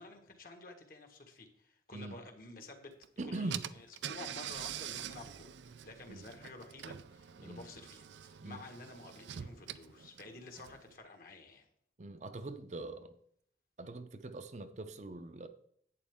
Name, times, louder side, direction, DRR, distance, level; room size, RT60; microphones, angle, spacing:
voice 1, 0.0-2.9 3.3-11.7, left 2 dB, 50° left, 1.6 m, -51 dB
Car / Engine, 3.0-3.1 3.5-10.9, right 10 dB, 85° right, 0.4 m, -45 dB
voice 2, 3.2-3.7 6.1-6.2 7.4-7.6 8.4-8.6 12.0-13.1 13.8-15.5, right 2 dB, 40° right, 0.6 m, -42 dB
11.0 x 8.6 x 3.6 m
head